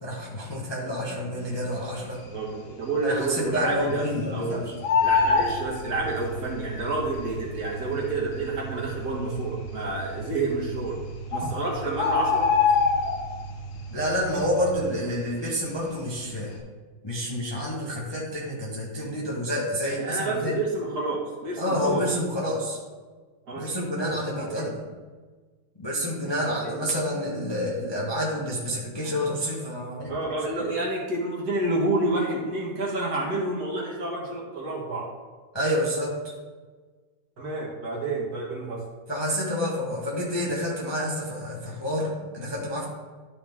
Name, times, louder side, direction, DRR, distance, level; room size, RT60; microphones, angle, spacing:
voice 1, 0.0-2.2 3.0-4.7 13.9-16.5 17.0-20.6 21.6-22.8 23.5-24.8 25.8-30.1 35.5-36.3 39.1-42.9, equal, 20° left, -4 dB, 0.9 m, -28 dB
Bird, 1.9-2.5 2.8-2.9 3.2-4.4 4.6-6.5 7.3-7.4 8.1-8.2 8.4-8.5 9.1-9.6 10.5-10.6 11.0-11.1 11.3-13.6 13.9-14.3 14.6-15.9 16.3-16.5, left 5 dB, 85° left, 1.8 m, -24 dB
voice 2, 2.3-4.0 4.3-4.6 5.0-11.0 11.3-12.5 19.8-22.1 23.5-23.7 24.1-24.6 26.2-26.8 30.1-35.1 37.4-38.8, right 2 dB, 55° right, -3 dB, 1.8 m, -29 dB
sound 1, 4.8-14.8, right 4 dB, 25° right, 0.6 m, -39 dB
11.5 x 3.9 x 3.5 m, 1.4 s
omnidirectional pair, 2.1 m